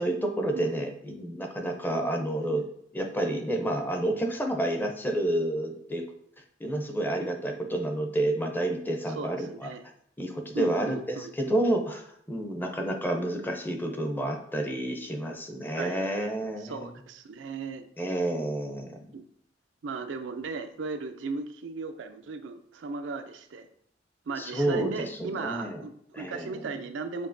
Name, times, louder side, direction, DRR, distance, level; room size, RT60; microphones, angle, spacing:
voice 1, 0.0-2.6 2.9-6.0 6.6-9.7 10.2-16.9 18.0-19.1 24.4-24.9 25.2-25.8 26.1-26.7, right 1 dB, 10° left, 3 dB, 0.6 m, -29 dB
voice 2, 9.1-9.8 10.5-11.5 15.7-16.1 16.6-17.9 19.1-19.2 19.8-23.7 24.3-27.3, right 4 dB, 85° right, 8 dB, 0.4 m, -36 dB
6.9 x 2.8 x 2.6 m, 0.66 s
head